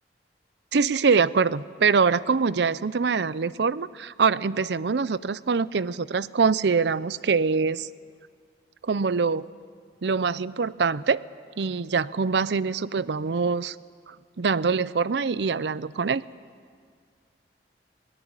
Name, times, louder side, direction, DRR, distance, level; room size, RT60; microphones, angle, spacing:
voice 1, 0.7-7.9 8.8-9.5 10.0-11.2 11.6-13.8 14.4-16.2, right 5 dB, 70° right, 19 dB, 0.5 m, -24 dB
22.0 x 18.0 x 8.8 m, 2.1 s
head